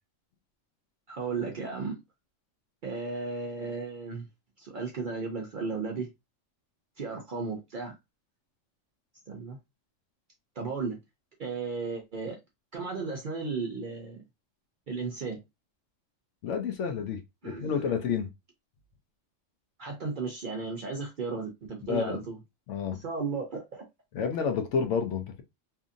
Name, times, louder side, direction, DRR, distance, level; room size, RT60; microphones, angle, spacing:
voice 1, 1.1-2.0 2.8-4.3 4.6-6.1 7.0-7.9 9.3-9.6 10.6-11.0 11.4-12.4 12.7-14.2 14.9-15.4 17.4-17.8 19.8-22.4 22.9-23.8, right 4 dB, 55° right, 0.5 m, -35 dB
voice 2, 16.4-18.3 21.8-22.2 22.7-23.0 24.1-25.4, left 6 dB, 70° left, 0.9 m, -30 dB
2.7 x 2.5 x 2.5 m
omnidirectional pair, 1.3 m